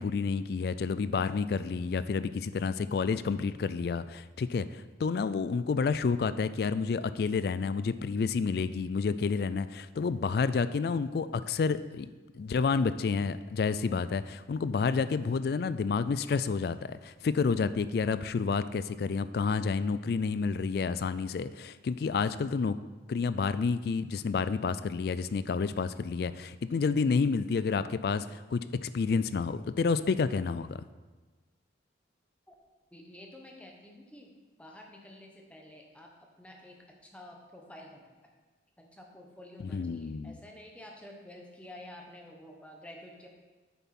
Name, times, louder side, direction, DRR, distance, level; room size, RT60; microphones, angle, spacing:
voice 1, 0.0-12.1 12.3-22.7 23.1-30.8 39.6-40.4, left 5 dB, 55° left, 14 dB, 0.3 m, -29 dB
voice 2, 32.9-34.3 34.6-38.1 38.8-43.3, left 1 dB, 5° left, 0 dB, 1.0 m, -50 dB
8.5 x 6.9 x 4.3 m, 1.3 s
head